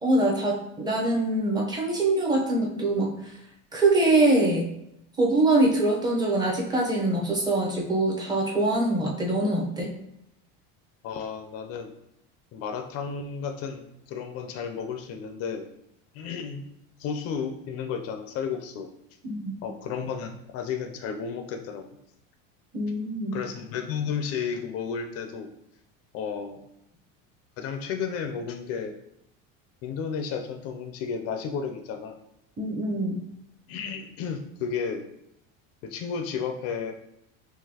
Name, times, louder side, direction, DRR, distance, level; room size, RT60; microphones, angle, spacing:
voice 1, 0.0-3.3 3.7-4.7 5.2-9.9 19.2-19.6 22.7-23.4 32.6-33.2, right 2 dB, 10° right, -1 dB, 0.6 m, -24 dB
voice 2, 11.0-11.9 12.5-15.7 16.1-16.6 17.0-18.9 19.6-22.0 23.3-25.5 26.1-26.6 27.6-28.9 29.8-32.2 33.7-35.1 35.8-36.9, left 6 dB, 50° left, 5 dB, 0.4 m, -33 dB
3.8 x 2.8 x 2.8 m, 0.80 s
cardioid pair, 140°, 33 cm